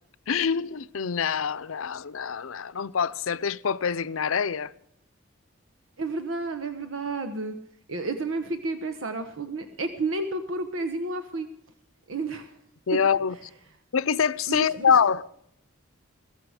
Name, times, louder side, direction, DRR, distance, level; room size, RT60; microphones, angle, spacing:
voice 1, 0.3-4.7 12.9-13.3 13.9-15.2, left 6 dB, 90° left, 0.6 m, -25 dB
voice 2, 6.0-7.5 7.9-11.5 12.1-12.5 12.9-13.0 14.5-15.0, right 3 dB, 80° right, 1.1 m, -31 dB
16.5 x 14.5 x 4.9 m
head